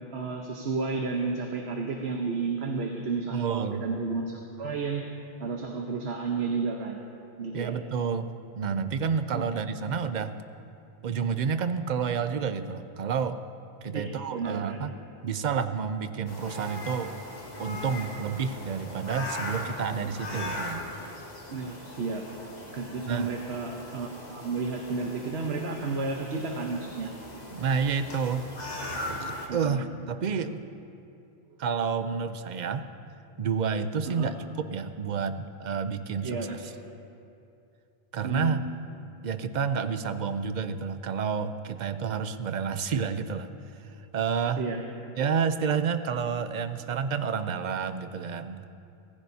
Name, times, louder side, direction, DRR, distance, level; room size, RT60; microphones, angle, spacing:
voice 1, 0.1-5.1 5.4-7.0 7.4-7.7 9.3-9.6 13.9-14.8 21.5-22.3 22.7-27.1 29.5-29.8 34.0-34.3 36.2-36.6 38.2-38.5 44.6-44.8, right 4 dB, 75° right, 1 dB, 1.2 m, -32 dB
voice 2, 3.3-3.8 7.5-8.3 8.6-10.3 11.0-13.4 13.8-14.9 15.2-17.1 17.6-20.9 23.1-23.3 27.5-28.5 29.1-30.6 31.6-32.9 33.4-36.6 38.1-38.6 39.2-43.5 44.1-44.6 45.2-48.8, right 6 dB, 50° right, 10 dB, 0.7 m, -29 dB
sound 1, 16.3-29.5, left 1 dB, 40° left, 1.8 m, -39 dB
25.0 x 15.0 x 2.8 m, 2.7 s
omnidirectional pair, 1.1 m